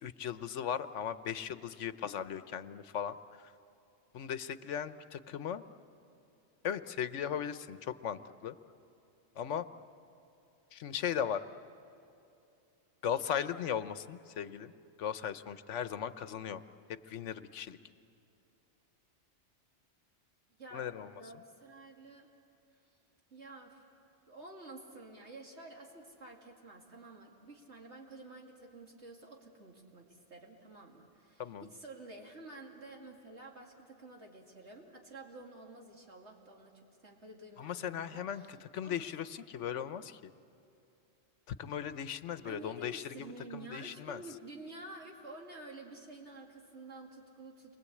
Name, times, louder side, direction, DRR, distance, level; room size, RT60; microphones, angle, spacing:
voice 1, 0.0-3.5 4.1-5.6 6.6-8.5 9.4-9.7 10.7-11.4 13.0-14.7 15.0-16.6 17.1-17.8 20.7-21.1 31.4-31.7 37.6-40.2 41.5-43.3 43.5-44.2, left 8 dB, 85° left, 12 dB, 1.1 m, -37 dB
voice 2, 21.2-22.3 23.3-23.8 24.3-38.6 38.8-39.0 42.4-47.8, right 2 dB, 70° right, 0 dB, 2.8 m, -50 dB
29.5 x 23.5 x 8.5 m, 2.7 s
omnidirectional pair, 1.2 m